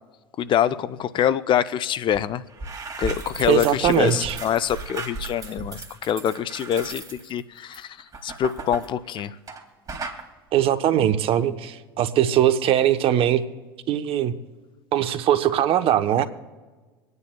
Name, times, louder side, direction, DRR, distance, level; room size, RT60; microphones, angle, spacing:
voice 1, 0.4-2.4 3.0-8.0 8.2-9.4, left 9 dB, 40° left, 14 dB, 0.5 m, -25 dB
sound 1, 2.1-2.2 2.5-9.6 9.9-10.2, right 3 dB, 30° right, 2.3 m, -35 dB
voice 2, 3.5-4.4 10.5-13.4 13.9-14.3 14.9-16.3, right 11 dB, 50° right, 11 dB, 0.9 m, -21 dB
26.5 x 9.6 x 2.3 m, 1.3 s
hypercardioid pair, 75°, 12 cm